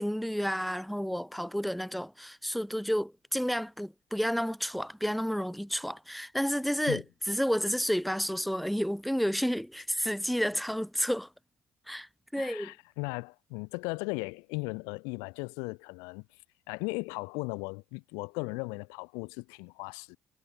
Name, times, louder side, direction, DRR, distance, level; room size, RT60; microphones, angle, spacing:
voice 1, 0.0-11.3 11.9-12.7, equal, ahead, 0.6 m, -31 dB
voice 2, 12.4-16.3 16.7-20.2, left 33 dB, 90° left, 0.4 m, -37 dB
supercardioid pair, 70°, 6 cm